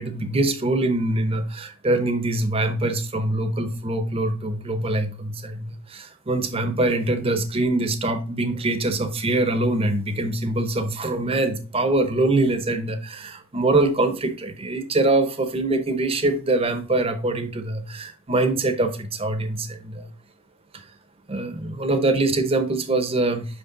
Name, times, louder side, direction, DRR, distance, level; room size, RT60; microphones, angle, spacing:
voice 1, 0.0-20.1 20.7-20.8 21.3-23.5, right 2 dB, 30° right, 0.7 m, -23 dB
5.6 x 5.3 x 3.8 m
head